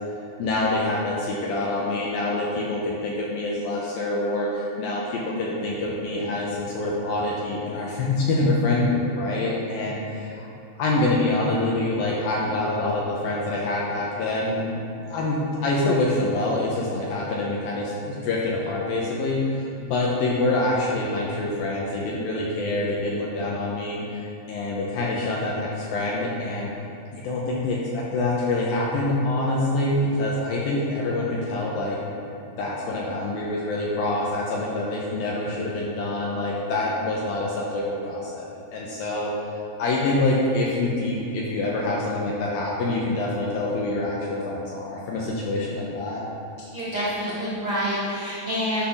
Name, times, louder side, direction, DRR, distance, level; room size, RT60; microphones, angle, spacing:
voice 1, 0.4-10.5 10.8-26.7 27.1-32.0 32.5-38.5 38.7-39.3 39.8-46.2, left 2 dB, 80° left, -4 dB, 2.2 m, -26 dB
voice 2, 46.7-48.9, equal, 85° right, -10 dB, 1.2 m, -27 dB
10.0 x 3.9 x 5.8 m, 2.6 s
omnidirectional pair, 5.0 m